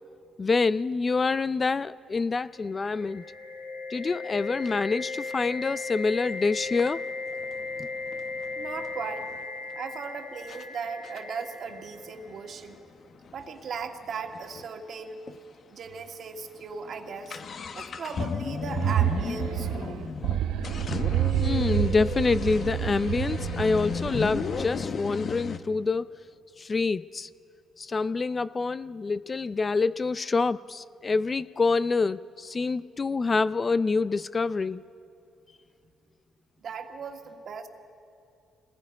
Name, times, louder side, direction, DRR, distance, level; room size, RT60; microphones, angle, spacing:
voice 1, 0.4-3.2 3.9-7.0 7.8-7.9 21.4-26.1 26.6-27.3 27.8-34.8, left 4 dB, 30° left, 16 dB, 0.4 m, -26 dB
sound 1, 2.6-12.5, left 3 dB, 65° left, 3.3 m, -37 dB
sound 2, 6.2-6.3 6.8-9.4 10.0-10.1 10.5-10.7 11.0-14.7 15.0-15.1 15.3-15.4 16.0-16.1 16.4-25.6, left 5 dB, 50° left, 0.8 m, -35 dB
voice 2, 8.6-9.3 9.7-12.8 13.3-15.2 15.7-17.4 17.7-20.1 36.6-37.7, right 5 dB, 60° right, 4 dB, 1.8 m, -37 dB
sound 3, 18.6-24.9, right 12 dB, 85° right, 0.4 m, -29 dB
27.0 x 19.5 x 5.3 m, 2.6 s
cardioid pair, 90°, 0 cm